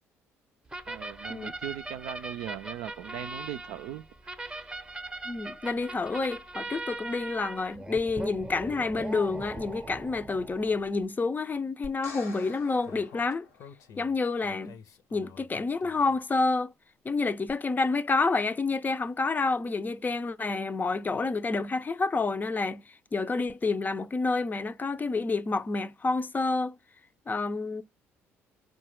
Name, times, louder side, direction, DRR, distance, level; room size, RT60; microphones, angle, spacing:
sound 1, 0.7-11.0, right 2 dB, 15° right, 0.7 m, -40 dB
voice 1, 0.9-4.7, right 12 dB, 65° right, 0.4 m, -39 dB
voice 2, 5.2-13.5 14.0-14.8 15.1-16.7 17.0-26.8 27.3-27.8, left 3 dB, 25° left, 0.5 m, -29 dB
sound 2, 11.8-14.1 17.5-17.6, left 4 dB, 90° left, 1.0 m, -47 dB
Speech, 12.8-16.2, left 6 dB, 55° left, 0.7 m, -50 dB
4.7 x 2.2 x 3.0 m
hypercardioid pair, 50°, 7 cm